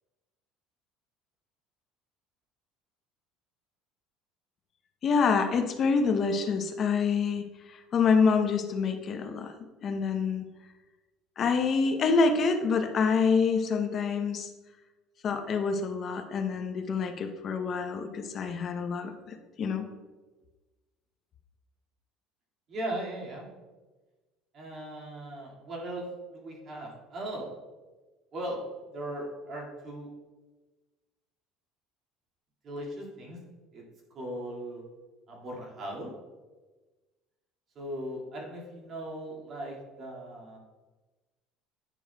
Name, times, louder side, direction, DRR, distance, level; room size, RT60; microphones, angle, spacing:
voice 1, 5.0-9.5 9.8-10.4 11.4-14.5 15.2-19.9, left 5 dB, 40° left, 6 dB, 0.7 m, -27 dB
voice 2, 22.7-23.5 24.5-26.0 26.3-27.5 28.3-28.6 28.9-30.1 32.6-33.4 33.7-33.8 34.1-34.8 35.3-36.1 37.8-40.6, right 1 dB, 45° right, -2 dB, 2.1 m, -38 dB
10.0 x 6.2 x 2.3 m, 1.2 s
supercardioid pair, 110°, 0 cm